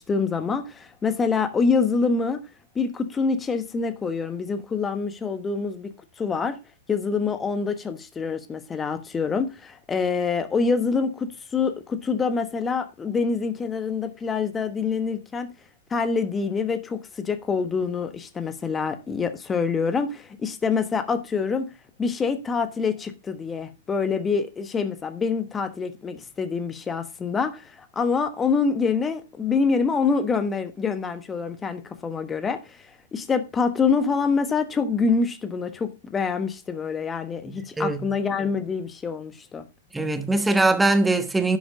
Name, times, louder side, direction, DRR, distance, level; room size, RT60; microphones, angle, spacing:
voice 1, 0.0-2.4 2.7-5.9 6.2-6.6 6.9-15.5 15.9-21.7 22.0-32.8 33.1-39.6, left 5 dB, 20° left, 1.2 m, -26 dB
voice 2, 37.4-38.1 39.9-41.6, right 2 dB, 10° right, 1.3 m, -22 dB
11.5 x 5.1 x 4.9 m
hypercardioid pair, 110°, 0 cm